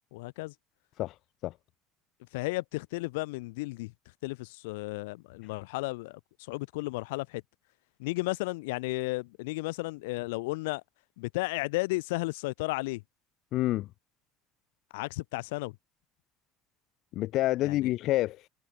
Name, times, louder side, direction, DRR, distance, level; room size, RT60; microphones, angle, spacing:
voice 1, 0.1-0.5 2.3-3.9 4.2-6.2 6.5-7.4 8.0-10.8 11.2-13.0 14.9-15.8 17.6-17.9, left 23 dB, 90° left, 6.2 m, -33 dB
voice 2, 13.5-13.9 17.1-18.5, left 16 dB, 65° left, 1.5 m, -28 dB
supercardioid pair, 90°, 0 cm